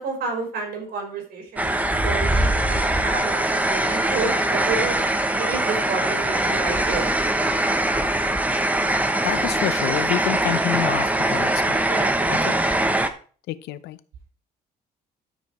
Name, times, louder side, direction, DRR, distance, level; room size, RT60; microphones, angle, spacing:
voice 1, 0.0-4.9 5.3-7.1 11.9-12.5, right 4 dB, 65° right, 2 dB, 4.0 m, -30 dB
sound 1, 1.6-13.1, right 1 dB, 10° right, 1.0 m, -22 dB
voice 2, 9.2-11.8 12.5-12.6 13.5-14.0, left 14 dB, 80° left, 15 dB, 0.8 m, -28 dB
12.5 x 5.1 x 4.8 m, 0.40 s
cardioid pair, 110°, 17 cm